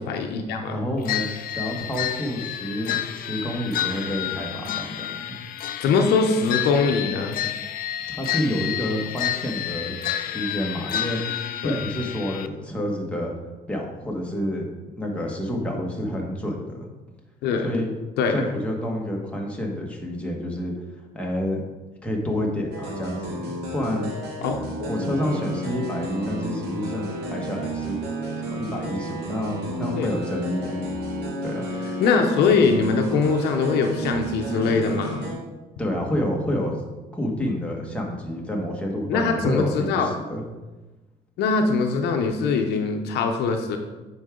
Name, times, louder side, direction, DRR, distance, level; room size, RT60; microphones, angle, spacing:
voice 1, 0.0-0.8 5.8-7.4 11.6-11.8 17.4-17.7 18.2-18.5 24.4-24.9 30.0-30.1 32.0-35.2 39.1-40.1 41.4-43.8, left 4 dB, 80° left, 4 dB, 0.8 m, -22 dB
voice 2, 0.7-5.4 8.1-11.2 11.6-13.3 13.7-14.7 14.9-16.9 17.6-17.9 18.3-20.7 21.1-21.6 22.0-24.1 24.9-28.0 28.4-30.8 31.4-31.7 35.8-36.8 37.1-40.4, left 1 dB, 5° left, -1 dB, 1.6 m, -29 dB
sound 1, 1.1-12.5, left 11 dB, 60° left, 0.5 m, -30 dB
sound 2, 22.7-35.3, right 1 dB, 80° right, 2.0 m, -31 dB
9.4 x 4.8 x 3.8 m, 1.2 s
cardioid pair, 110°, 17 cm